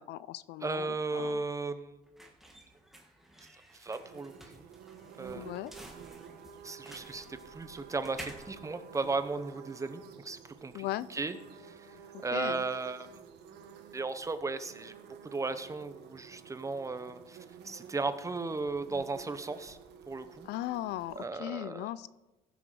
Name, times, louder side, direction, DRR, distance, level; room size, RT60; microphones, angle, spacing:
voice 1, 0.0-1.4 5.4-5.7 10.7-11.1 12.1-12.6 20.4-22.1, left 14 dB, 80° left, 18 dB, 0.4 m, -38 dB
voice 2, 0.6-2.0 3.8-4.7 5.2-5.5 6.6-7.2 7.5-10.8 11.1-11.3 12.2-13.1 13.9-14.9 15.3-17.4 17.6-19.8 20.1-20.5 21.2-21.9, right 3 dB, 20° right, 11 dB, 0.8 m, -35 dB
sound 1, 1.1-9.7, right 1 dB, ahead, 1.6 m, -52 dB
sound 2, 3.9-21.3, right 7 dB, 80° right, 1.2 m, -51 dB
15.0 x 6.2 x 4.9 m, 1.1 s
cardioid pair, 110°, 17 cm